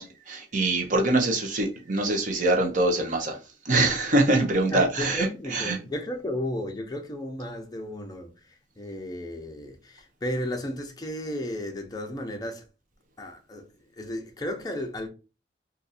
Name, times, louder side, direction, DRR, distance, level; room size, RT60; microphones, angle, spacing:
voice 1, 0.0-5.8, right 2 dB, 45° right, 0.7 m, -24 dB
voice 2, 4.7-12.6 13.2-15.1, left 1 dB, 20° left, 0.7 m, -34 dB
2.6 x 2.5 x 4.1 m
head